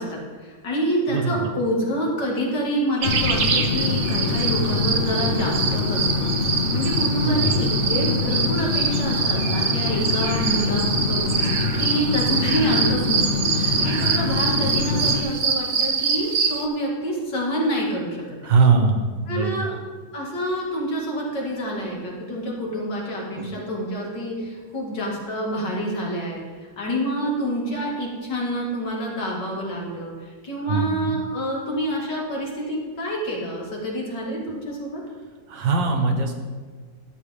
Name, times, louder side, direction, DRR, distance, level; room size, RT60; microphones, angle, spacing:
voice 1, 0.0-6.2 6.7-11.4 11.8-18.2 19.3-19.7 20.1-26.4 26.8-35.0, equal, 75° left, -3 dB, 2.7 m, -27 dB
voice 2, 1.1-1.5 7.2-7.7 14.1-14.4 15.0-15.3 18.4-19.7 23.3-23.6 30.7-31.2 35.5-36.3, right 4 dB, 85° right, 4 dB, 1.9 m, -22 dB
sound 1, 3.0-15.2, left 4 dB, 55° left, 0.8 m, -25 dB
sound 2, 3.0-16.6, right 5 dB, 55° right, 1.0 m, -25 dB
12.5 x 8.0 x 3.5 m, 1.5 s
omnidirectional pair, 1.9 m